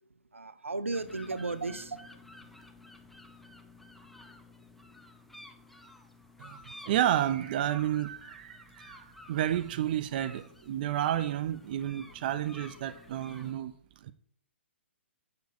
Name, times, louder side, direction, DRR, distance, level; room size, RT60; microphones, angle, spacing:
voice 1, 0.0-2.5, right 3 dB, 90° right, 0.7 m, -36 dB
sound 1, 0.9-13.5, left 1 dB, ahead, 0.8 m, -52 dB
voice 2, 6.4-13.7 14.0-14.1, right 11 dB, 45° right, 0.5 m, -31 dB
8.0 x 6.9 x 4.1 m
figure-of-eight pair, 125°, 7 cm